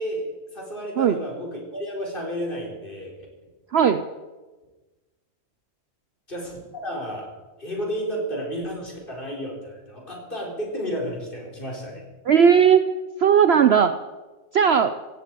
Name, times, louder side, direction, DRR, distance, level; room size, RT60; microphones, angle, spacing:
voice 1, 0.0-3.1 6.3-7.3 7.6-12.0, equal, 35° left, -2 dB, 4.6 m, -32 dB
voice 2, 3.7-4.0 12.3-12.8 13.2-13.9 14.5-14.9, right 7 dB, 55° right, 9 dB, 0.8 m, -16 dB
17.0 x 16.5 x 4.7 m, 1.2 s
omnidirectional pair, 1.5 m